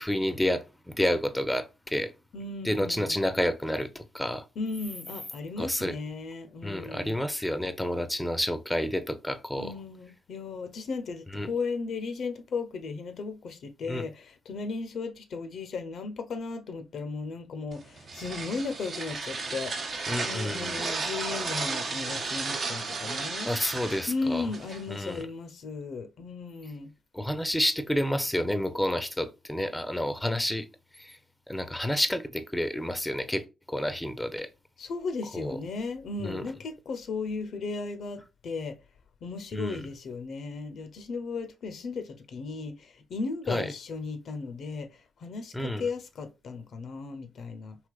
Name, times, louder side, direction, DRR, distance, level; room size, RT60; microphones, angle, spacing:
voice 1, 0.0-2.1 2.6-4.5 5.6-6.0 6.6-9.7 11.3-11.5 13.9-14.1 20.1-20.8 23.4-24.5 24.9-25.2 27.1-30.7 30.9-31.2 31.5-34.5 35.3-35.6 36.2-36.4 39.5-39.9 43.5-43.7 45.5-45.9, left 1 dB, 10° left, 0.5 m, -29 dB
voice 2, 2.3-3.2 4.6-7.2 9.6-19.7 20.2-23.5 24.1-26.9 34.8-38.8 39.2-47.8, left 4 dB, 65° left, 0.5 m, -36 dB
sound 1, 17.7-25.2, right 4 dB, 55° right, 0.6 m, -34 dB
3.3 x 2.8 x 2.3 m
hypercardioid pair, 45°, 0 cm